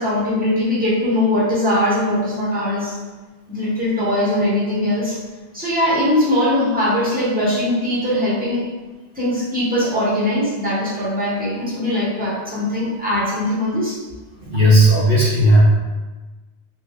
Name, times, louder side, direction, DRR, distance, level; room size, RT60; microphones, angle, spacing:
voice 1, 0.0-2.9 3.5-5.2 5.5-8.6 9.1-14.0, left 1 dB, 10° right, -9 dB, 1.1 m, -20 dB
voice 2, 14.4-15.6, right 1 dB, 55° right, -8 dB, 0.9 m, -14 dB
3.1 x 2.5 x 3.6 m, 1.2 s
omnidirectional pair, 1.2 m